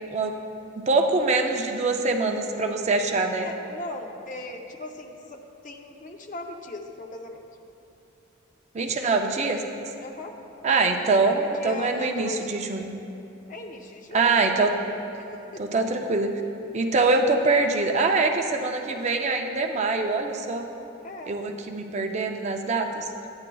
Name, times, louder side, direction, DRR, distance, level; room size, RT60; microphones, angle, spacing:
voice 1, 0.8-3.5 8.7-9.6 10.6-12.9 14.1-14.7 15.6-16.3 16.7-20.7 21.3-23.1, right 3 dB, 35° right, 4 dB, 0.4 m, -24 dB
voice 2, 3.4-7.4 10.0-10.4 11.4-12.5 13.5-14.4 15.2-15.7 21.0-21.4, left 2 dB, 40° left, 3 dB, 0.6 m, -38 dB
12.0 x 9.5 x 2.3 m, 2.8 s
head